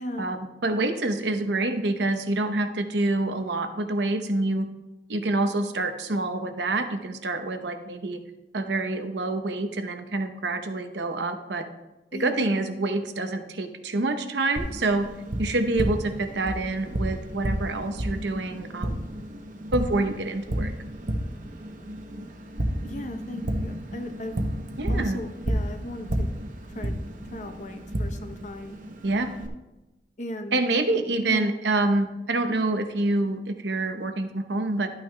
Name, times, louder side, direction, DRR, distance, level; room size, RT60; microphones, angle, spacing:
voice 1, 0.2-4.7 5.1-8.2 8.5-11.6 12.2-15.1 15.4-19.0 19.7-20.7 24.8-25.2 29.0-29.3 30.5-34.9, right 2 dB, 85° right, 7 dB, 0.8 m, -27 dB
voice 2, 12.1-12.5 22.8-24.4 24.9-26.3 26.7-27.0 27.3-28.8 30.2-30.6 31.3-31.5, left 1 dB, 45° left, 6 dB, 0.7 m, -36 dB
Tap, 14.6-29.5, right 1 dB, 45° right, 0.8 m, -32 dB
12.5 x 8.9 x 2.2 m, 1.0 s
head